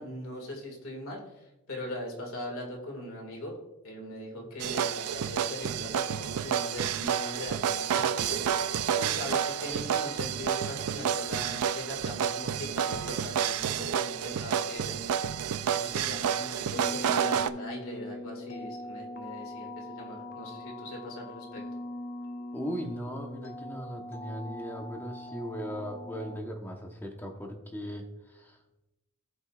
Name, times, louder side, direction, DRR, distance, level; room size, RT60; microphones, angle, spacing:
voice 1, 0.0-3.5 3.8-8.4 8.9-15.0 15.7-21.6, left 1 dB, 70° left, 0 dB, 2.2 m, -40 dB
sound 1, 4.6-17.5, right 8 dB, 85° right, 0.4 m, -30 dB
sound 2, 16.7-26.4, left 1 dB, 45° left, 0.8 m, -41 dB
voice 2, 22.5-28.6, equal, 10° left, 2 dB, 1.0 m, -38 dB
16.0 x 5.3 x 2.4 m, 0.99 s
head